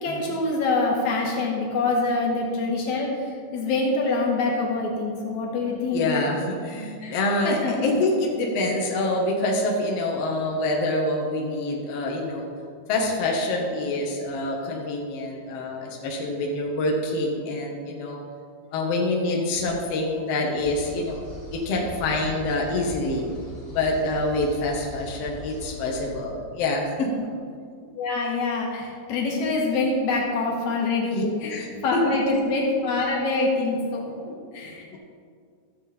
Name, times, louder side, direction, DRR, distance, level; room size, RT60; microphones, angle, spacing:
voice 1, 0.0-6.1 7.0-7.2 7.4-7.9 28.0-31.5 31.8-35.0, left 3 dB, 80° left, -1 dB, 2.9 m, -25 dB
voice 2, 5.9-12.5 12.9-18.2 18.7-21.2 21.5-23.2 23.7-27.1 31.1-32.4 34.9-35.0, left 2 dB, 60° left, -1 dB, 2.1 m, -26 dB
sound 1, 20.6-26.1, left 1 dB, 45° left, 3.1 m, -40 dB
14.5 x 7.4 x 4.1 m, 2.1 s
omnidirectional pair, 3.3 m